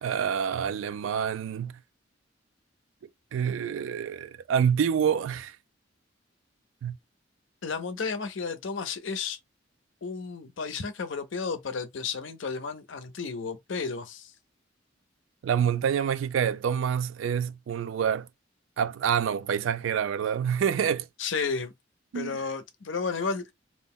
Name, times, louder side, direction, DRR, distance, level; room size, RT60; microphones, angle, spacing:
voice 1, 0.0-1.7 3.3-5.6 6.8-7.0 15.4-18.3 18.8-21.1 22.1-22.4, right 8 dB, 90° right, 0.3 m, -27 dB
voice 2, 7.6-9.4 10.0-14.3 21.2-21.7 22.1-23.5, left 5 dB, 80° left, 0.6 m, -32 dB
2.5 x 2.0 x 3.6 m
head